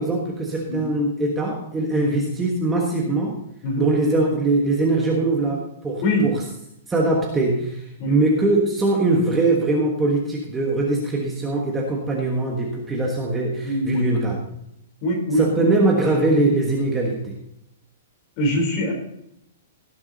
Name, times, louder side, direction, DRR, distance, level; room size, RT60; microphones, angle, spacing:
voice 1, 0.0-3.4 3.8-6.4 6.9-14.4 15.3-17.4, right 2 dB, 10° right, -1 dB, 1.4 m, -22 dB
voice 2, 13.6-14.2 15.0-15.4 18.4-18.9, left 1 dB, 35° left, 1 dB, 3.8 m, -22 dB
17.0 x 7.1 x 4.0 m, 0.78 s
hypercardioid pair, 170°, 0 cm